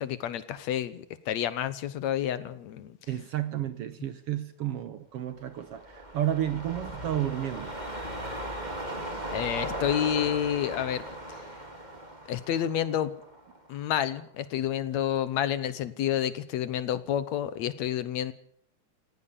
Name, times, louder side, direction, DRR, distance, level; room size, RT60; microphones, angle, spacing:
voice 1, 0.0-3.0 9.3-11.0 12.3-13.1 13.7-18.3, left 10 dB, 70° left, 15 dB, 2.1 m, -29 dB
voice 2, 3.1-7.7, right 12 dB, 65° right, 12 dB, 1.6 m, -31 dB
sound 1, 5.5-13.9 14.3-14.4, right 1 dB, 15° right, 3.4 m, -38 dB
19.0 x 16.5 x 8.6 m, 0.65 s
omnidirectional pair, 3.5 m